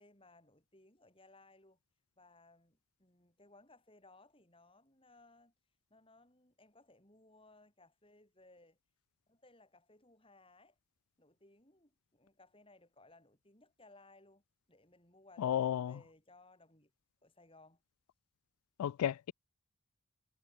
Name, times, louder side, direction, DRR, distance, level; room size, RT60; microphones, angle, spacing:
voice 1, 0.0-1.8 2.2-5.5 5.9-8.8 9.3-10.8 11.2-14.4 14.7-16.9 17.2-17.8, left 2 dB, 25° left, 6.7 m, -63 dB
voice 2, 15.4-15.9 18.8-19.3, left 9 dB, 85° left, 0.3 m, -33 dB
head